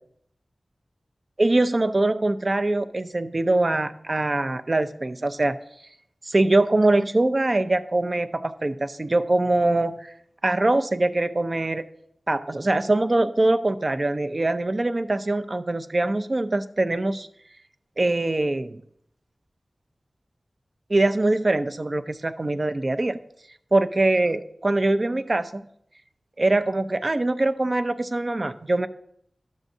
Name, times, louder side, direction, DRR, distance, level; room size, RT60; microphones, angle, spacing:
voice 1, 1.4-5.6 6.3-10.1 10.4-11.8 12.3-17.3 18.0-18.8 20.9-23.2 23.7-25.6 26.4-28.9, right 2 dB, 40° right, 10 dB, 0.5 m, -23 dB
11.5 x 7.2 x 2.7 m, 0.71 s
wide cardioid pair, 70°, 0 cm